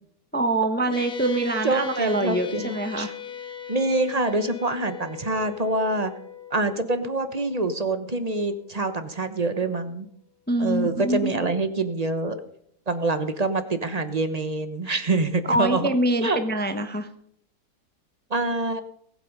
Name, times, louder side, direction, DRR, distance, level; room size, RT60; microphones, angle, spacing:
voice 1, 0.3-3.1 10.5-11.5 15.5-17.1, right 1 dB, 10° left, 8 dB, 0.7 m, -25 dB
sound 1, 0.9-9.6, left 8 dB, 60° left, 1.5 m, -40 dB
voice 2, 1.6-3.1 3.7-6.1 6.5-10.0 10.6-12.4 12.9-15.9 16.2-16.4 18.3-18.8, right 2 dB, 30° right, 10 dB, 0.8 m, -25 dB
19.5 x 8.5 x 5.4 m, 0.68 s
omnidirectional pair, 1.9 m